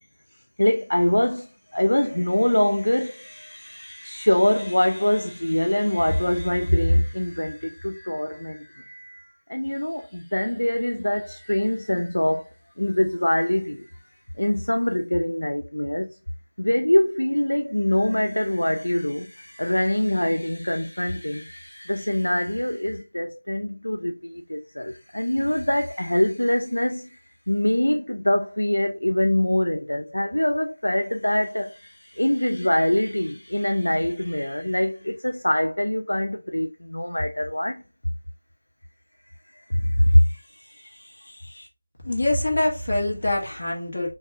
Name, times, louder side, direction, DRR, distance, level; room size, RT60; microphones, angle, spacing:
voice 1, 0.6-12.5 12.8-13.9 14.4-16.2 16.6-27.2 27.5-37.8 39.5-41.7, left 1 dB, 75° left, 0.4 m, -24 dB
voice 2, 42.0-44.1, left 1 dB, 50° left, 1.7 m, -24 dB
5.2 x 2.6 x 2.9 m
figure-of-eight pair, 165°, 0 cm